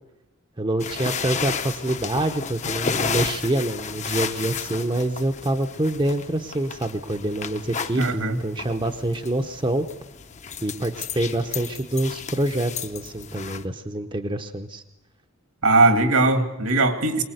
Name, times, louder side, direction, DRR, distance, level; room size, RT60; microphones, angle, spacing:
voice 1, 0.6-9.9 10.6-14.8, right 1 dB, 20° right, 6 dB, 0.7 m, -26 dB
sound 1, 0.8-13.6, left 6 dB, 30° left, 0.7 m, -33 dB
voice 2, 8.0-8.4 15.6-17.2, right 2 dB, 75° right, 7 dB, 2.3 m, -19 dB
23.5 x 20.0 x 7.9 m, 0.94 s
head